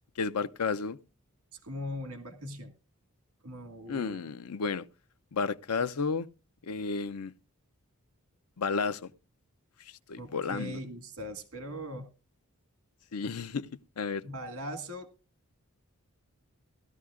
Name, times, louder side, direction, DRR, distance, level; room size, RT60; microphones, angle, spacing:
voice 1, 0.2-1.0 3.9-4.9 5.3-6.3 6.6-7.3 8.6-9.0 10.1-10.8 13.1-13.7 14.0-14.3, left 5 dB, 90° left, 0.6 m, -32 dB
voice 2, 1.5-2.7 3.4-4.3 10.2-12.1 14.2-15.1, equal, 70° right, 1.9 m, -40 dB
17.5 x 13.0 x 2.4 m
head